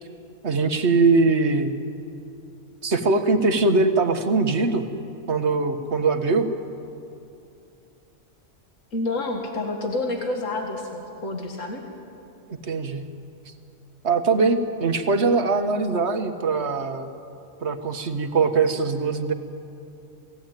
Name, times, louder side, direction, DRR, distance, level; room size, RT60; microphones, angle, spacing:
voice 1, 0.4-1.7 2.8-4.9 5.3-6.5 12.6-13.1 14.0-17.1 17.6-19.3, right 4 dB, 55° right, 7 dB, 1.7 m, -21 dB
voice 2, 8.9-11.8, left 2 dB, 75° left, 2 dB, 2.4 m, -28 dB
28.0 x 18.0 x 9.2 m, 2.7 s
omnidirectional pair, 1.4 m